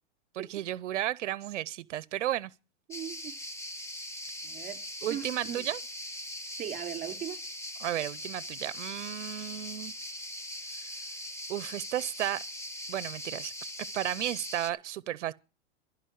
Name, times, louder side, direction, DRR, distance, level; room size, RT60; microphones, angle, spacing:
voice 1, 0.3-2.5 5.0-5.8 7.8-9.9 11.5-12.4 12.9-13.5 13.9-15.3, right 13 dB, 85° right, 0.7 m, -33 dB
sound 1, 2.9-14.7, left 1 dB, 10° left, 1.1 m, -41 dB
voice 2, 2.9-3.3 4.4-4.8 5.1-5.7 6.6-7.4, right 10 dB, 25° right, 3.4 m, -38 dB
14.0 x 5.4 x 9.4 m
hypercardioid pair, 135°, 35 cm